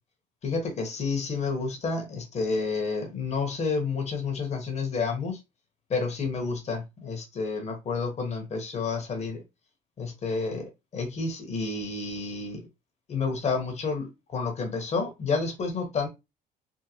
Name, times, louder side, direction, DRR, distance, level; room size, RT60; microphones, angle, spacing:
voice 1, 0.4-5.4 5.9-9.4 10.0-12.7 13.1-16.1, left 4 dB, 40° left, 1.2 m, -30 dB
3.7 x 2.1 x 2.9 m
cardioid pair, 110°, 17 cm